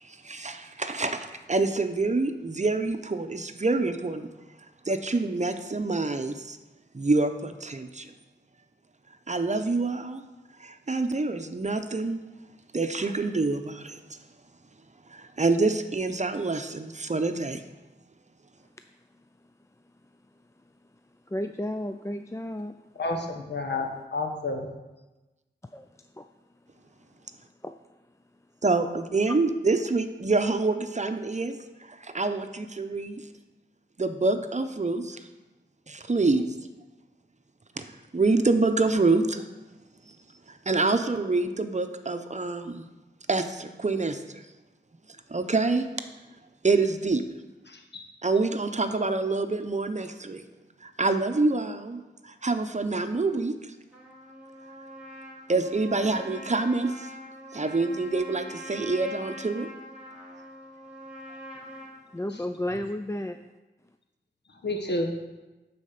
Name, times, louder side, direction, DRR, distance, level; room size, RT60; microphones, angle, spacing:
voice 1, 0.0-4.3 4.9-6.6 6.9-8.1 9.3-10.2 10.6-12.2 12.7-14.0 15.1-17.6 28.6-31.6 31.9-33.2 34.0-35.3 35.9-36.4 37.8-37.9 38.1-39.4 40.5-42.8 43.3-44.4 45.3-45.9 46.6-47.2 48.2-50.4 50.8-53.7 55.5-57.1 57.5-59.7, right 3 dB, 40° right, 8 dB, 0.8 m, -26 dB
voice 2, 21.3-22.7 25.7-25.9 26.2-26.3 27.6-27.7 62.1-63.4, left 1 dB, 15° left, 7 dB, 0.4 m, -32 dB
voice 3, 23.0-23.8 24.1-24.7 47.7-48.0 64.6-65.2, left 2 dB, 65° left, 4 dB, 1.3 m, -30 dB
Trumpet, 53.9-62.0, equal, 5° right, 3.0 m, -43 dB
9.8 x 4.3 x 6.7 m, 1.1 s
cardioid pair, 40°, 19 cm